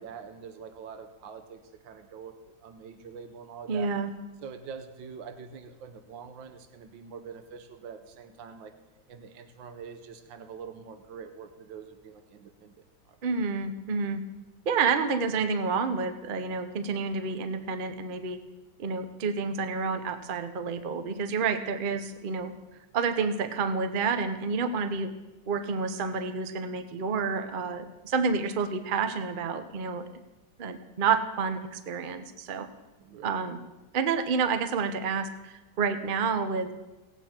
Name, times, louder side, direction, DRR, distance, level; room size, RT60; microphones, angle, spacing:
voice 1, 0.0-3.9 4.4-8.7 9.1-13.2 33.0-33.3, right 6 dB, 90° right, 8 dB, 1.6 m, -45 dB
voice 2, 3.7-4.1 13.2-14.2 14.7-18.4 18.8-22.5 22.9-25.1 25.5-30.1 30.6-32.7 33.2-33.6 33.9-36.7, right 5 dB, 50° right, 9 dB, 0.6 m, -29 dB
18.0 x 8.2 x 4.3 m, 1.1 s
omnidirectional pair, 2.0 m